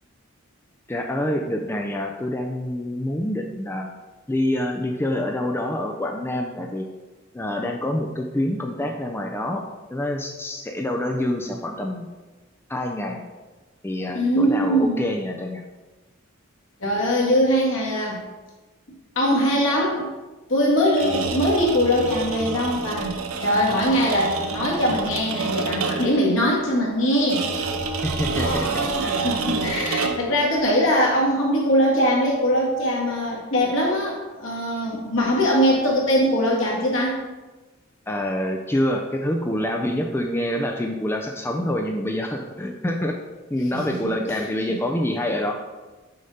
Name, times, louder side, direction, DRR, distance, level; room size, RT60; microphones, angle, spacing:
voice 1, 0.9-3.9 4.3-6.9 7.3-9.6 9.9-12.1 12.7-13.2 13.8-15.6 23.5-23.9 28.0-29.2 38.1-43.2 43.5-45.5, left 1 dB, 10° left, 2 dB, 0.4 m, -26 dB
voice 2, 14.1-15.0 16.8-18.2 19.2-20.1 20.5-27.5 28.4-37.2 43.7-44.5, equal, 65° left, -4 dB, 1.9 m, -22 dB
sound 1, 20.9-26.3 27.3-30.4, right 4 dB, 85° right, 0.7 m, -28 dB
6.5 x 5.2 x 4.2 m, 1.2 s
head